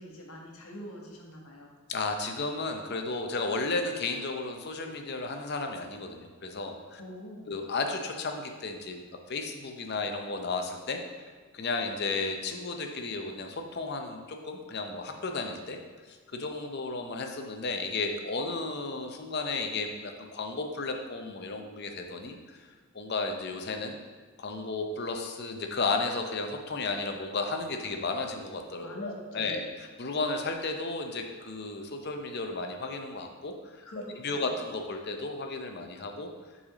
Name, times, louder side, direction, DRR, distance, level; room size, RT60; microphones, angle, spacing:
voice 1, 0.0-1.7 7.0-7.5 28.8-29.7 33.8-34.5, equal, 85° left, -1 dB, 1.3 m, -44 dB
voice 2, 1.9-7.0 7.5-9.0 9.3-11.2 11.5-15.8 16.1-22.7 22.9-24.0 24.4-33.8 34.2-36.3, left 3 dB, 50° left, 4 dB, 0.6 m, -33 dB
5.9 x 4.1 x 4.9 m, 1.5 s
head